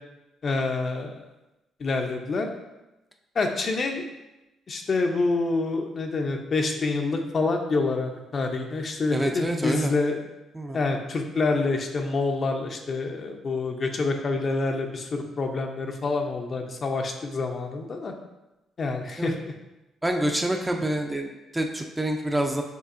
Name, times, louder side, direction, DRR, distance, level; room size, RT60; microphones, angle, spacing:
voice 1, 0.4-1.1 1.8-2.5 3.4-4.1 4.7-10.2 10.7-18.1 18.8-19.3, left 3 dB, 45° left, 3 dB, 0.5 m, -27 dB
voice 2, 9.1-9.9 10.5-10.8 19.2-19.3 20.0-22.6, right 1 dB, 10° right, 3 dB, 0.4 m, -27 dB
6.6 x 2.6 x 2.5 m, 0.98 s
cardioid pair, 90°, 0 cm